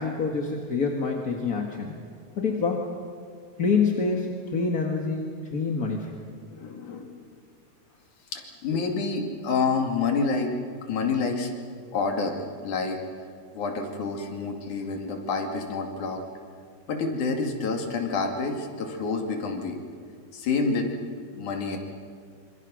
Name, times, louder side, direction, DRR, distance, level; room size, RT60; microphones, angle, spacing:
voice 1, 0.0-1.9 2.4-2.9 3.6-6.1, left 4 dB, 35° left, 1 dB, 1.6 m, -26 dB
voice 2, 6.5-7.2 8.3-10.5 10.9-11.5 11.9-13.0 13.5-16.2 16.9-19.8 20.3-20.9 21.3-21.8, left 4 dB, 70° left, 3 dB, 3.8 m, -28 dB
27.0 x 26.0 x 6.3 m, 2.1 s
omnidirectional pair, 3.6 m